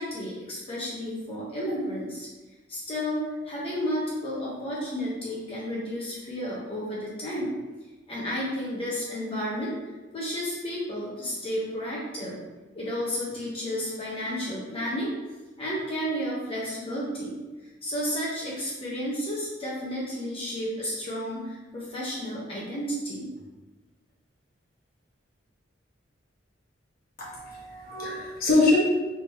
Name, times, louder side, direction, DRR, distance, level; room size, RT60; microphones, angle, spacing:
voice 1, 0.0-2.3 2.7-7.5 8.1-9.8 10.1-12.4 12.7-15.1 15.6-17.4 17.8-23.3, equal, 30° left, -7 dB, 0.9 m, -32 dB
voice 2, 27.2-28.8, left 3 dB, 55° left, -6 dB, 1.3 m, -24 dB
3.5 x 2.9 x 4.5 m, 1.2 s
head